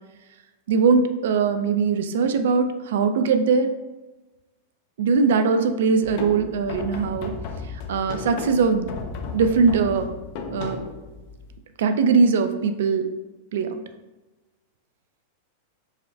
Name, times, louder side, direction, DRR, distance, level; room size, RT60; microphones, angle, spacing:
voice 1, 0.7-3.7 5.0-7.3 7.9-8.9 9.3-10.1 10.5-10.8 11.8-13.1 13.5-13.8, right 5 dB, 75° right, 8 dB, 0.3 m, -21 dB
sound 1, 6.0-11.6, left 4 dB, 55° left, 0.5 m, -35 dB
4.7 x 2.1 x 2.7 m, 1.1 s
supercardioid pair, 135°, 0 cm